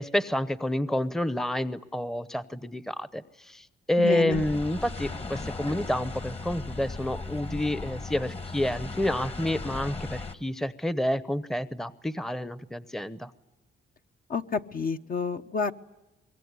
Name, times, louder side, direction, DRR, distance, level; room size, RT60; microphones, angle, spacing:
voice 1, 0.0-13.3, left 1 dB, ahead, 14 dB, 0.8 m, -29 dB
voice 2, 4.0-4.4 14.3-15.7, left 5 dB, 45° left, 7 dB, 1.1 m, -29 dB
sound 1, 4.3-10.3, left 3 dB, 30° left, 1.5 m, -37 dB
25.0 x 22.5 x 9.6 m, 0.96 s
cardioid pair, 90°, 20 cm